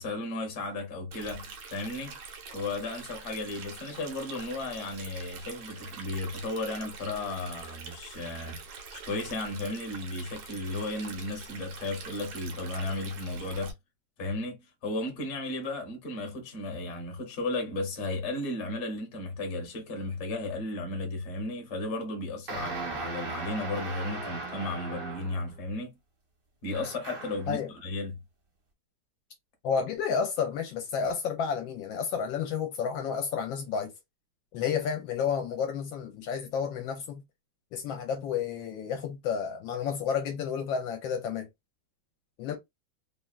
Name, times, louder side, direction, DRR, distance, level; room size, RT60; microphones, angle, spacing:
voice 1, 0.0-2.2 2.5-8.6 8.9-13.7 14.2-25.9 26.6-28.2, left 2 dB, 45° left, 1.0 m, -34 dB
Stream, 1.1-13.7, right 5 dB, 80° right, 1.5 m, -45 dB
sound 1, 22.5-25.5 26.7-27.5, right 3 dB, 45° right, 0.7 m, -38 dB
voice 2, 29.6-33.9 34.5-37.2 37.7-41.5 42.4-42.5, left 6 dB, 75° left, 1.3 m, -31 dB
3.5 x 2.2 x 2.3 m
omnidirectional pair, 2.2 m